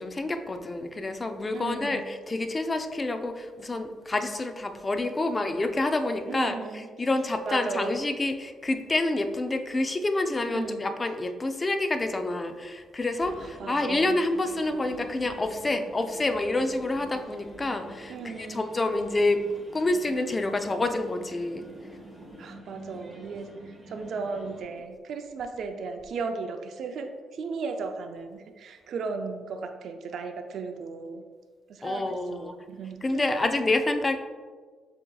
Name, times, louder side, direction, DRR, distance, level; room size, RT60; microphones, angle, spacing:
voice 1, 0.0-19.4 19.7-21.7 31.8-32.5 33.0-34.2, left 2 dB, 25° left, 7 dB, 0.4 m, -28 dB
voice 2, 1.5-2.1 6.3-6.9 7.4-7.9 10.5-10.9 13.4-14.2 18.1-18.7 22.4-23.5 23.9-31.2 31.7-33.3, right 4 dB, 65° right, 6 dB, 0.4 m, -36 dB
sound 1, 13.2-24.6, right 1 dB, 30° right, 1.4 m, -46 dB
7.5 x 2.8 x 2.3 m, 1.5 s
cardioid pair, 90°, 0 cm